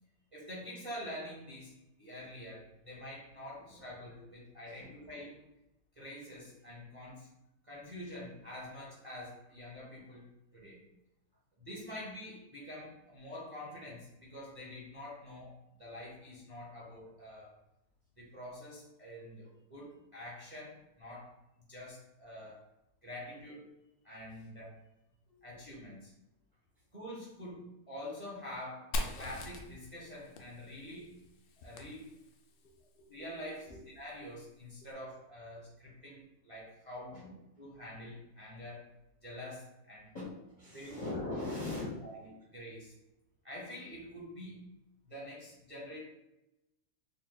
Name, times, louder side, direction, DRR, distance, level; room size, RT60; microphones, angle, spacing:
voice 1, 0.3-5.4 6.0-7.3 7.6-10.3 10.5-10.8 11.6-17.5 18.2-21.3 21.7-22.6 23.0-23.7 24.0-24.8 25.4-26.1 26.9-31.2 31.6-32.0 33.1-37.2 37.6-38.8 39.2-40.1 40.7-41.1 42.0-42.9 43.4-44.7 45.0-46.0, left 1 dB, 25° right, -6 dB, 0.7 m, -46 dB
voice 2, 4.7-5.3 25.3-25.4 32.6-33.1 33.7-33.8 35.0-35.1 37.1-37.7 40.1-41.9, left 2 dB, 45° left, -6 dB, 0.6 m, -42 dB
Fire, 28.9-32.6, left 1 dB, 70° left, 0.9 m, -41 dB
4.0 x 2.2 x 3.8 m, 0.92 s
omnidirectional pair, 1.9 m